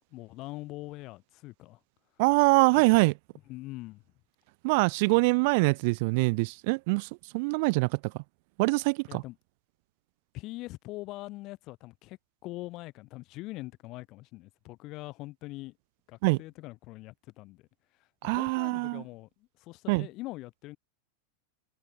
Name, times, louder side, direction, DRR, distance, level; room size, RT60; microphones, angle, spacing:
voice 1, 0.1-1.8 2.8-2.9 3.5-4.0 9.1-9.4 10.3-15.8 16.1-17.7 18.2-20.8, left 19 dB, 40° left, 2.2 m, -43 dB
voice 2, 2.2-3.1 4.6-7.1 7.3-7.9 8.6-9.2 16.2-16.4 18.2-19.0 19.9-20.1, right 28 dB, 45° right, 0.4 m, -24 dB
figure-of-eight pair, 90°, 0 cm